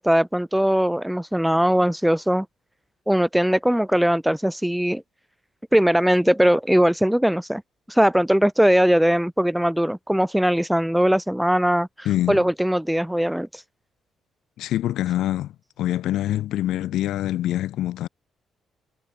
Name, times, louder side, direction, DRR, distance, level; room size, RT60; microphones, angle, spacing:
voice 1, 0.0-2.5 3.1-5.0 5.7-7.6 7.9-11.9 12.3-13.6, equal, 5° right, 1.0 m, -20 dB
voice 2, 12.0-12.4 14.6-18.1, left 13 dB, 85° left, 3.0 m, -25 dB
cardioid pair, 90°, 0 cm